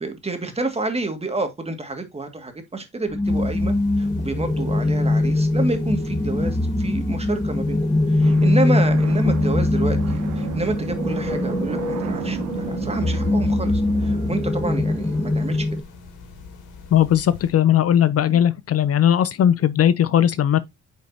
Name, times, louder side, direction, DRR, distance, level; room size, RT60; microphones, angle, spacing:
voice 1, 0.0-7.8 8.1-15.7 18.3-18.4, right 2 dB, 20° right, 2.0 m, -29 dB
sound 1, 3.1-15.8, left 2 dB, 10° left, 1.0 m, -22 dB
sound 2, 3.2-17.5, left 4 dB, 85° left, 2.6 m, -44 dB
sound 3, 8.2-15.6, right 7 dB, 85° right, 1.2 m, -33 dB
voice 2, 16.9-20.6, left 10 dB, 55° left, 0.6 m, -18 dB
9.1 x 5.2 x 2.7 m
cardioid pair, 90°, 30 cm